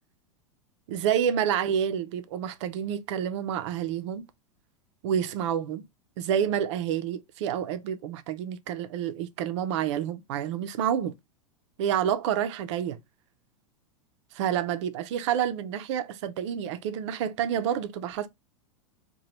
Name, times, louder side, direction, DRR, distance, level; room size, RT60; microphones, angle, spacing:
voice 1, 0.9-4.2 5.0-5.9 6.2-11.1 11.8-13.0 14.3-18.3, right 9 dB, 60° right, 0.5 m, -28 dB
2.9 x 2.2 x 3.0 m
hypercardioid pair, 100°, 17 cm